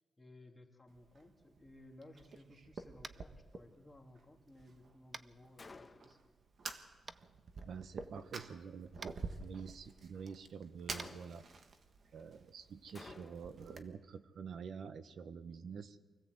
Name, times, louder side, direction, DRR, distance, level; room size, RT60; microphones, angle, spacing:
voice 1, 0.2-6.2, left 1 dB, 10° left, 1 dB, 2.8 m, -59 dB
Fire, 0.9-13.8, right 4 dB, 55° right, 1.6 m, -50 dB
Tap, 3.0-3.3 5.1-5.3 7.1-7.2 9.0-9.1 10.9-11.1, right 4 dB, 35° right, 0.6 m, -47 dB
Gunshot gunfire, 5.6-6.3 10.9-11.6 12.9-13.6, left 3 dB, 30° left, 1.1 m, -54 dB
voice 2, 7.6-11.4 12.1-16.0, right 6 dB, 75° right, 11 dB, 1.1 m, -48 dB
25.0 x 16.5 x 8.1 m, 1.4 s
cardioid pair, 105°, 0 cm